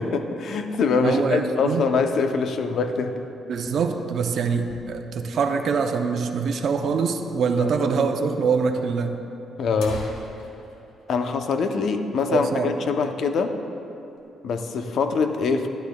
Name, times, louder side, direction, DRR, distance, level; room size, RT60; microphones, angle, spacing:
voice 1, 0.0-3.2 7.6-7.7 9.6-10.1 11.1-13.6 14.4-15.7, left 4 dB, 65° left, 7 dB, 0.6 m, -24 dB
voice 2, 1.0-1.8 3.5-9.2 12.3-12.7, right 5 dB, 60° right, 5 dB, 0.6 m, -24 dB
sound 1, 3.6-5.4 5.8-5.9 6.1-6.2 6.8-6.9 7.8-8.0 8.3-8.4 9.1-9.2 9.6-12.2 12.5-12.6 13.0-13.3 13.7-14.3, left 2 dB, 90° left, 1.0 m, -43 dB
11.5 x 11.5 x 2.3 m, 2.9 s
cardioid pair, 90°, 0 cm